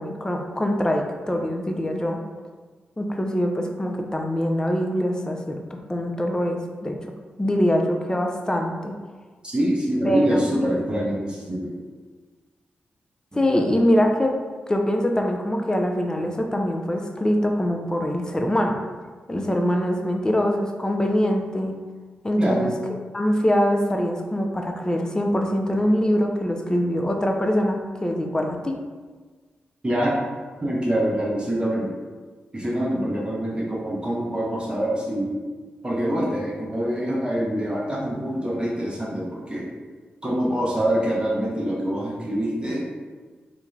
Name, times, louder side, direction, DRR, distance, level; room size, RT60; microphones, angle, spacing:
voice 1, 0.0-2.2 3.0-5.6 5.9-7.0 7.4-8.9 10.0-10.6 13.3-14.3 14.7-18.8 19.3-21.7 22.2-22.7 23.1-28.7, equal, 20° left, 3 dB, 0.4 m, -23 dB
voice 2, 9.4-11.7 13.3-13.7 22.4-22.7 29.8-30.2 30.6-31.9 32.5-35.4 35.8-39.7 40.2-42.8, equal, 25° right, -4 dB, 0.7 m, -25 dB
2.5 x 2.2 x 3.1 m, 1.4 s
cardioid pair, 50°, 4 cm